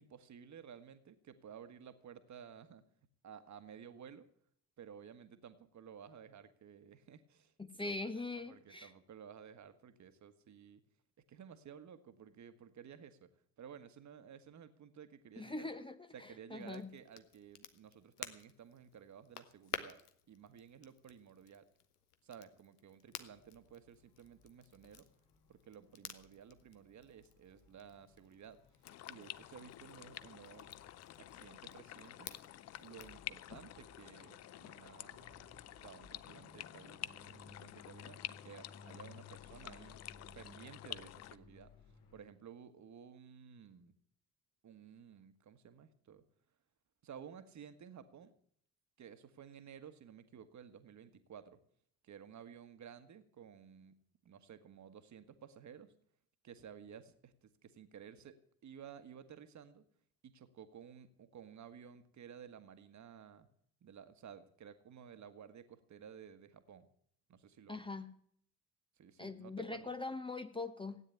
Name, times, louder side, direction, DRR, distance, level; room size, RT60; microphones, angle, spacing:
voice 1, 0.0-2.8 3.2-4.3 4.8-10.8 11.3-13.3 13.6-15.7 16.1-20.0 20.3-21.7 22.2-25.1 25.5-28.6 29.1-30.8 31.1-32.3 32.8-35.3 35.7-40.0 40.3-41.7 42.1-43.9 44.6-46.2 47.0-48.3 49.0-51.6 52.0-54.0 54.2-55.9 56.4-58.4 58.6-59.8 60.2-63.5 63.8-66.9 67.3-67.8 69.0-69.9, right 8 dB, 35° right, 11 dB, 1.5 m, -55 dB
voice 2, 7.6-8.9 15.4-16.9 67.7-68.1 69.2-71.0, left 3 dB, 10° left, 9 dB, 0.9 m, -42 dB
Crackle, 16.6-33.2, left 10 dB, 75° left, 1.1 m, -53 dB
sound 1, 23.1-42.2, left 5 dB, 55° left, 3.5 m, -62 dB
sound 2, 28.8-41.4, left 13 dB, 35° left, 0.6 m, -50 dB
16.5 x 9.7 x 8.4 m, 0.66 s
figure-of-eight pair, 50°, 46 cm